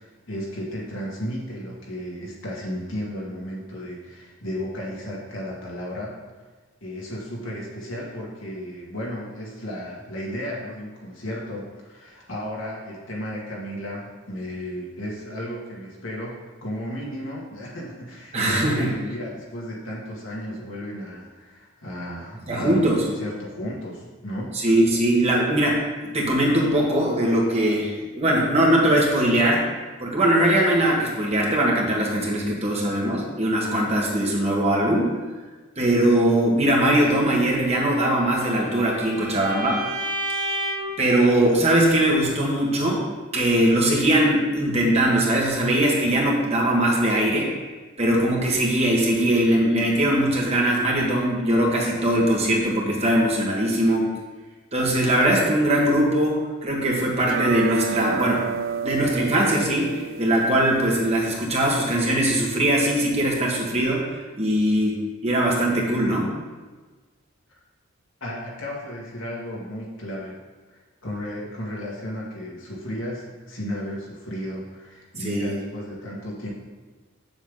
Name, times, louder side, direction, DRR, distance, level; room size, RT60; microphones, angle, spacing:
voice 1, 0.0-6.2 6.8-24.6 68.2-70.4 70.7-76.5, equal, 70° left, -4 dB, 2.1 m, -34 dB
voice 2, 18.3-18.9 22.5-23.0 24.5-25.8 26.1-29.6 30.0-35.1 35.8-39.8 41.0-43.1 43.3-47.5 48.0-54.1 54.7-58.5 58.8-66.3 75.2-75.5, right 1 dB, 30° right, -2 dB, 1.6 m, -21 dB
Bowed string instrument, 38.0-41.0, right 1 dB, 45° right, 2.3 m, -31 dB
sound 1, 57.2-62.2, right 6 dB, 70° right, 0.3 m, -31 dB
8.0 x 7.1 x 3.9 m, 1.3 s
head